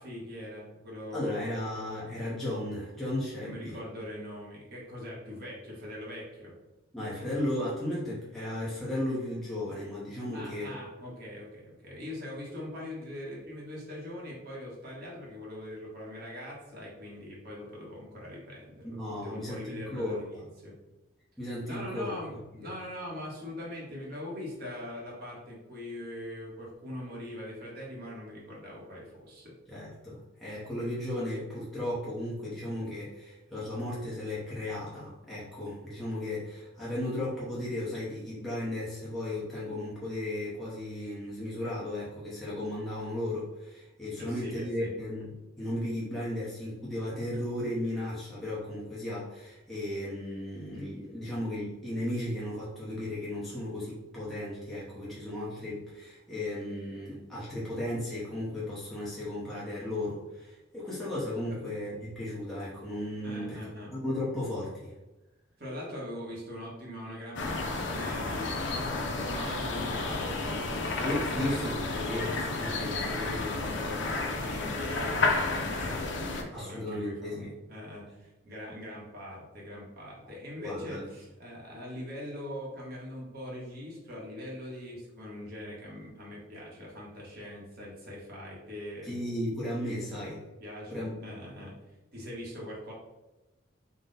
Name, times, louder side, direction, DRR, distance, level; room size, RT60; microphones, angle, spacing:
voice 1, 0.0-1.5 3.4-6.5 10.3-20.7 21.6-29.5 44.2-44.9 61.5-61.6 63.2-63.9 65.6-71.6 71.9-89.2 90.6-91.7 92.1-92.9, left 1 dB, 50° right, -4 dB, 1.1 m, -42 dB
voice 2, 1.1-3.8 6.9-10.8 18.8-20.4 21.4-22.1 29.7-63.6 63.9-65.0 71.0-71.7 72.1-72.2 72.6-73.2 76.5-77.5 80.6-81.0 89.0-90.4 90.9-91.3, left 1 dB, ahead, -9 dB, 0.8 m, -35 dB
sound 1, 67.4-76.4, left 3 dB, 65° left, 0.5 m, -31 dB
3.9 x 2.2 x 3.9 m, 1.0 s
head